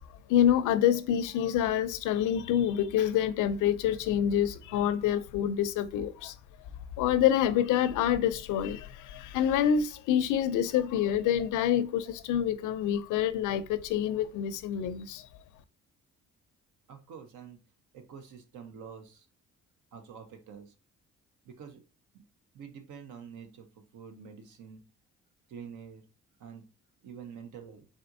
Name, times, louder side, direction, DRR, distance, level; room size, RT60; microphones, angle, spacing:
voice 1, 0.3-6.3 7.0-15.3, left 10 dB, 85° left, 0.5 m, -27 dB
voice 2, 16.9-17.6 17.9-19.3 19.9-20.7 21.4-21.8 22.1-22.2 22.5-24.8 25.5-26.0 26.4-26.6 27.0-27.9, right 7 dB, 75° right, 0.9 m, -47 dB
4.3 x 3.8 x 2.6 m
cardioid pair, 90°, 30 cm